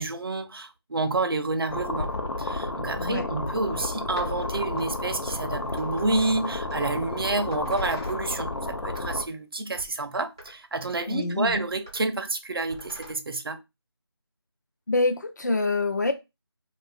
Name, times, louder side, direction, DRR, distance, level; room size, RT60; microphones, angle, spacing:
voice 1, 0.0-13.6, right 3 dB, 60° right, 0.5 m, -29 dB
sound 1, 1.7-9.3, left 2 dB, 75° left, 0.7 m, -32 dB
sound 2, 4.1-8.4 8.8-9.3 9.7-10.0 10.4-10.5 10.8-11.0 11.4-12.1 12.6-13.1, right 1 dB, 10° right, 0.4 m, -46 dB
voice 2, 11.1-11.6 14.9-16.1, left 3 dB, 40° left, 0.5 m, -25 dB
2.5 x 2.5 x 3.5 m
figure-of-eight pair, 170°, 14 cm